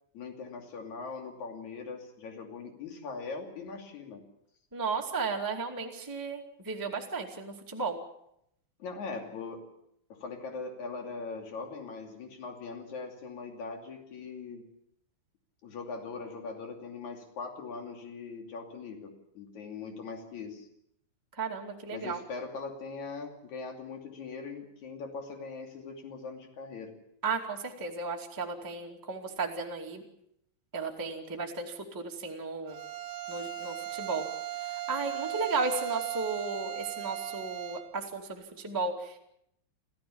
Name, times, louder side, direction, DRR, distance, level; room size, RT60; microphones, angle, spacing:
voice 1, 0.1-4.2 8.8-9.7 10.1-14.6 15.6-20.7 21.9-26.9, left 4 dB, 45° left, 3 dB, 3.6 m, -41 dB
voice 2, 4.7-8.0 21.4-22.2 27.2-30.0 30.7-32.8 33.3-34.3 34.9-39.2, right 4 dB, 30° right, 0 dB, 0.3 m, -34 dB
Bowed string instrument, 32.7-37.9, right 14 dB, 75° right, 3.8 m, -37 dB
27.0 x 15.0 x 7.1 m, 0.76 s
omnidirectional pair, 5.5 m